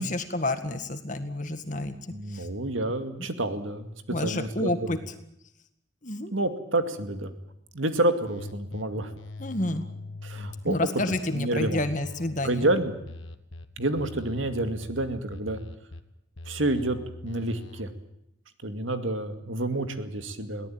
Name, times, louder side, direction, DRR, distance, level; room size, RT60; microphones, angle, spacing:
voice 1, 0.0-1.9 2.3-2.4 4.1-5.0 6.0-6.3 8.9-9.0 9.4-9.8 10.7-12.7, left 2 dB, 40° left, 8 dB, 1.9 m, -29 dB
voice 2, 2.1-4.9 6.3-7.3 7.7-9.1 10.2-10.8 11.3-11.8 12.4-12.9 13.8-15.6 16.5-17.0 17.2-17.9 18.6-20.7, right 1 dB, 90° right, 8 dB, 2.3 m, -28 dB
sound 1, 8.3-8.8 9.2-11.2 11.6-13.7 14.0-16.0 16.4-17.8, left 2 dB, 85° left, 1.5 m, -42 dB
22.0 x 18.0 x 9.0 m, 0.79 s
head